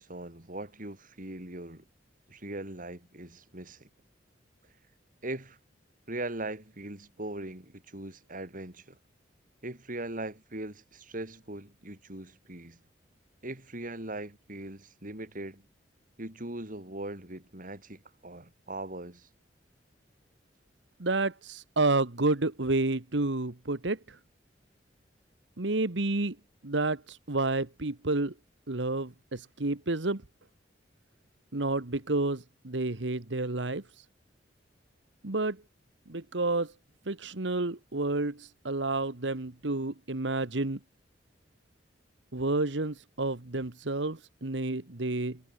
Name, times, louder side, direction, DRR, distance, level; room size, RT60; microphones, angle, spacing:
voice 1, 0.0-1.9 2.3-3.9 5.2-5.6 6.1-9.0 9.6-12.8 13.4-15.6 16.2-19.3, right 2 dB, 50° right, 5.1 m, -40 dB
voice 2, 21.0-24.2 25.6-26.4 26.6-28.3 28.7-30.2 31.5-34.0 35.2-35.6 36.1-36.7 37.0-40.8 42.3-45.4, right 2 dB, 80° right, 1.6 m, -30 dB
head